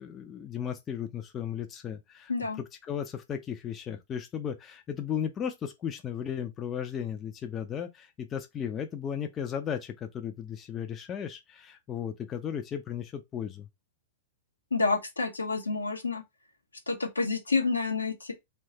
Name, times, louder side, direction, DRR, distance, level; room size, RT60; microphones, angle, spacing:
voice 1, 0.0-2.3 2.6-13.7, left 8 dB, 25° left, 0.4 m, -35 dB
voice 2, 2.3-2.6 14.7-16.2 16.9-18.3, left 4 dB, 80° left, 0.8 m, -29 dB
3.0 x 2.2 x 2.8 m
figure-of-eight pair, 100°, 0 cm